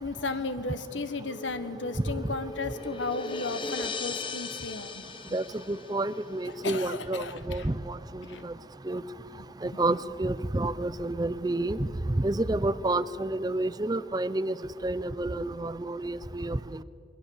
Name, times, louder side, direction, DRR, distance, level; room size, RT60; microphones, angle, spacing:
voice 1, 0.0-5.0 5.3-5.4 6.6-7.6 8.2-8.4, left 3 dB, 90° left, 12 dB, 1.4 m, -34 dB
sound 1, 1.2-6.4, left 3 dB, 25° left, 1.0 m, -38 dB
voice 2, 5.3-8.5 8.9-9.0 9.6-11.9 12.2-14.6 14.8-16.8, right 2 dB, 20° right, 16 dB, 0.5 m, -30 dB
28.0 x 22.0 x 7.2 m, 2.6 s
head